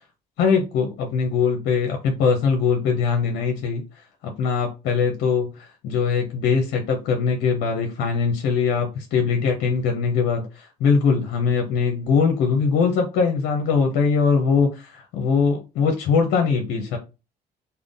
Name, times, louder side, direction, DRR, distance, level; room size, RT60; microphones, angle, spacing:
voice 1, 0.4-3.8 4.2-17.0, left 5 dB, 75° left, 0.8 m, -21 dB
3.5 x 2.2 x 3.6 m
supercardioid pair, 85°, 17 cm